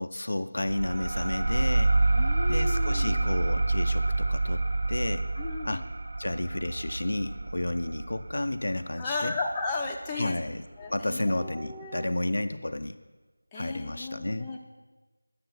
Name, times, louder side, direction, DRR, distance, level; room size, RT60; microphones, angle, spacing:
voice 1, 0.0-2.1 2.5-5.3 5.6-5.9 6.2-9.3 10.2-10.7 10.9-13.0 13.5-14.5, left 1 dB, 55° left, 9 dB, 0.5 m, -32 dB
sound 1, 0.7-9.9, right 2 dB, 45° right, 0.5 m, -28 dB
voice 2, 2.1-3.3 5.4-5.8 9.0-10.4 10.8-12.1 13.5-14.6, left 3 dB, 10° left, -1 dB, 0.7 m, -35 dB
9.6 x 6.6 x 7.6 m, 1.2 s
figure-of-eight pair, 165°, 0 cm